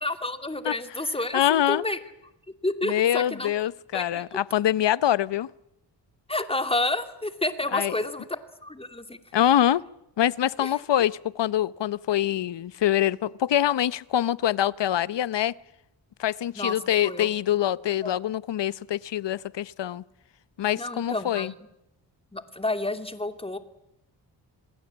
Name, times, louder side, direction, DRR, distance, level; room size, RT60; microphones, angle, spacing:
voice 1, 0.0-2.0 2.6-3.5 3.9-4.2 6.3-9.2 10.6-10.7 16.6-16.8 17.0-17.3 18.0-18.2 20.7-21.7 22.3-23.6, left 2 dB, 10° left, 2.6 m, -30 dB
voice 2, 1.3-1.8 2.8-5.5 7.7-7.9 9.3-9.8 10.2-15.5 16.2-20.0 20.6-21.5, left 11 dB, 70° left, 0.9 m, -24 dB
28.0 x 19.5 x 8.8 m
cardioid pair, 75°, 45 cm